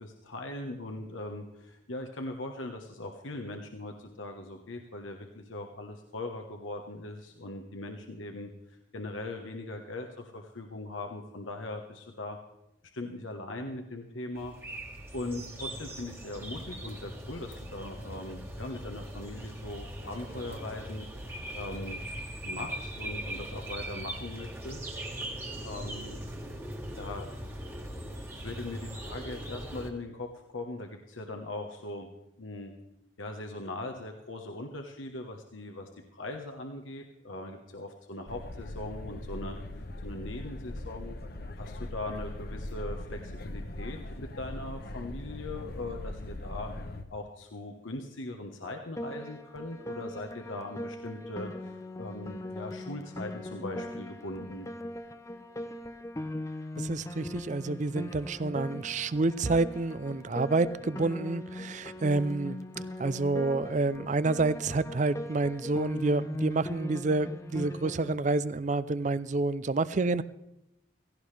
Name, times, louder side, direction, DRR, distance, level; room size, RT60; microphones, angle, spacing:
voice 1, 0.0-8.5 8.9-12.4 12.9-14.5 14.8-21.1 21.5-22.0 22.4-24.8 25.6-26.2 27.0-27.7 28.3-32.1 32.4-32.7 33.2-41.2 41.6-46.7 47.1-51.7 52.0-54.7, left 2 dB, 85° left, 3 dB, 1.3 m, -40 dB
sound 1, 14.4-29.9, right 1 dB, 10° right, 1.5 m, -40 dB
sound 2, 38.3-47.0, left 1 dB, 50° left, 1.0 m, -40 dB
Piano, 49.0-68.2, left 1 dB, 15° left, 0.8 m, -40 dB
voice 2, 56.8-62.6 63.0-70.2, right 3 dB, 40° right, 16 dB, 0.5 m, -28 dB
16.5 x 16.5 x 3.4 m, 0.86 s
head